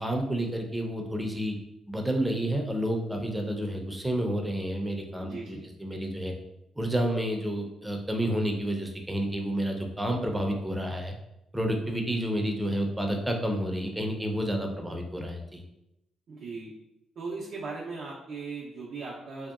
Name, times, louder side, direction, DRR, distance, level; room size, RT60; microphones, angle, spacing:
voice 1, 0.0-1.6 1.9-6.3 6.8-11.2 11.5-15.6, right 1 dB, 10° right, 2 dB, 0.5 m, -30 dB
voice 2, 5.2-5.7 16.3-16.7 17.2-19.5, right 4 dB, 65° right, -5 dB, 0.5 m, -38 dB
2.7 x 2.2 x 2.3 m, 0.87 s
supercardioid pair, 65°, 0 cm